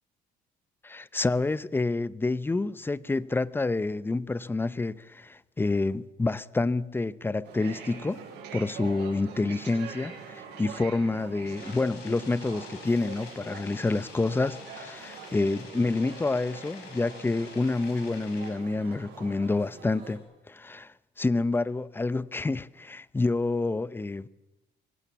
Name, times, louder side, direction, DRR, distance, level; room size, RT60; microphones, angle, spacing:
voice 1, 0.8-8.2 8.5-20.2 20.5-24.3, left 3 dB, 15° left, 0.6 m, -28 dB
sound 1, 7.4-20.2, right 6 dB, 85° right, 6.9 m, -44 dB
sound 2, 11.6-18.5, left 5 dB, 85° left, 6.0 m, -47 dB
23.0 x 17.5 x 7.3 m
cardioid pair, 110°, 17 cm